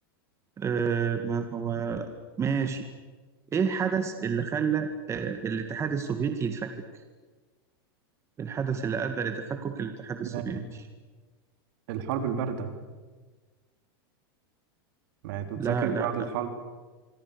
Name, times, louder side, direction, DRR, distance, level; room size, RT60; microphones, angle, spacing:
voice 1, 0.6-2.1 2.4-2.9 3.5-6.7 8.4-10.8 15.6-16.3, right 6 dB, 20° right, 7 dB, 1.9 m, -29 dB
voice 2, 10.2-10.7 11.9-12.7 15.2-16.5, right 8 dB, 65° right, 7 dB, 3.6 m, -31 dB
26.0 x 24.0 x 6.8 m, 1.3 s
supercardioid pair, 130°, 13 cm